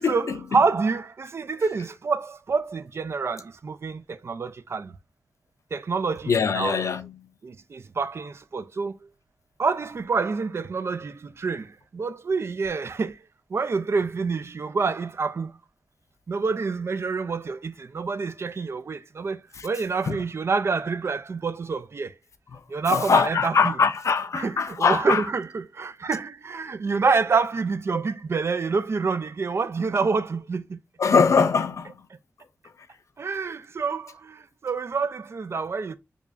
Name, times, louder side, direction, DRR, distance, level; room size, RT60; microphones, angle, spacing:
voice 1, 0.0-4.9 5.7-7.0 7.4-9.1 9.6-13.2 13.5-15.6 16.3-22.1 22.7-23.8 24.3-30.8 33.2-36.0, right 4 dB, 60° right, 0.3 m, -27 dB
voice 2, 6.3-7.1 20.1-20.2 22.9-25.2 31.0-31.9, left 5 dB, 80° left, 0.4 m, -21 dB
4.7 x 2.4 x 2.4 m
wide cardioid pair, 85°, 5 cm